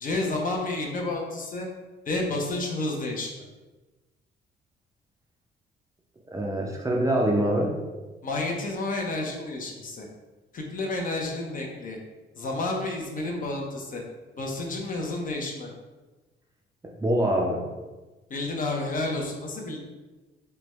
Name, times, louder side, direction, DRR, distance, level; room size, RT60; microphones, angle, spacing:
voice 1, 0.0-1.7 2.1-3.3 8.2-10.1 10.5-12.0 12.4-14.0 14.4-15.7 18.3-19.8, left 2 dB, 45° left, 0 dB, 0.6 m, -30 dB
voice 2, 6.3-7.8 17.0-17.6, right 1 dB, 15° right, -1 dB, 0.4 m, -24 dB
3.3 x 2.1 x 3.0 m, 1.2 s
cardioid pair, 90°, 20 cm